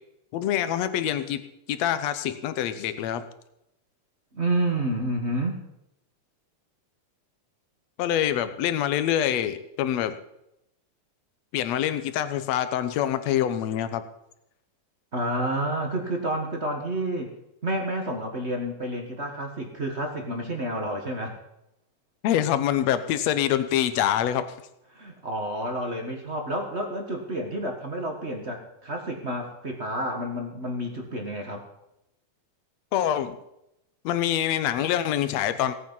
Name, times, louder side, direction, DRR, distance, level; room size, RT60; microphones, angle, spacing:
voice 1, 0.3-1.4 1.7-3.2 8.0-10.2 11.5-14.0 22.2-24.4 32.9-33.4 34.0-35.7, left 11 dB, 70° left, 11 dB, 1.9 m, -25 dB
voice 2, 4.3-5.6 15.1-17.3 17.6-21.4 24.9-31.7, right 1 dB, 30° right, 3 dB, 1.2 m, -29 dB
17.0 x 9.4 x 5.5 m, 0.84 s
omnidirectional pair, 3.5 m